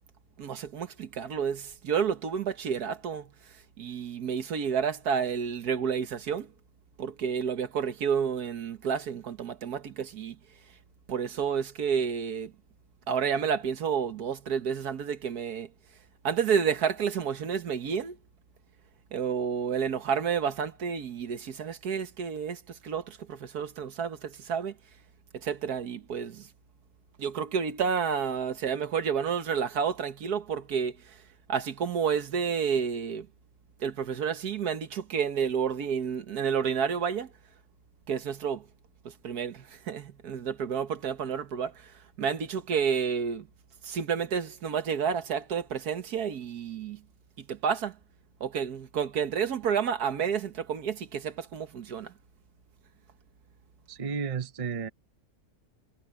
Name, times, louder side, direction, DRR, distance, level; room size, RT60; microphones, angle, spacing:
voice 1, 0.4-3.3 3.8-6.5 7.0-10.4 11.1-12.5 13.1-15.7 16.2-18.2 19.1-24.7 25.3-26.5 27.2-31.2 31.5-33.3 33.8-37.3 38.1-38.7 39.1-41.9 42.2-43.5 43.8-47.0 47.4-48.0 48.4-52.1, right 7 dB, 85° right, 1.8 m, -30 dB
voice 2, 53.9-54.9, right 6 dB, 30° right, 0.7 m, -32 dB
omnidirectional pair, 1.6 m